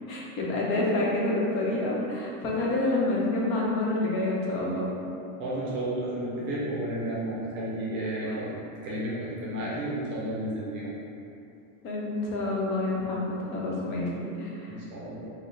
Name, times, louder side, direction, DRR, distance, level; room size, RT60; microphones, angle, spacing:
voice 1, 0.1-4.9 8.2-8.4 11.8-14.8, left 2 dB, 75° left, -4 dB, 1.0 m, -28 dB
voice 2, 5.4-11.0 14.7-15.3, right 1 dB, 30° right, -6 dB, 0.4 m, -32 dB
4.9 x 2.1 x 3.2 m, 2.7 s
cardioid pair, 180°, 40 cm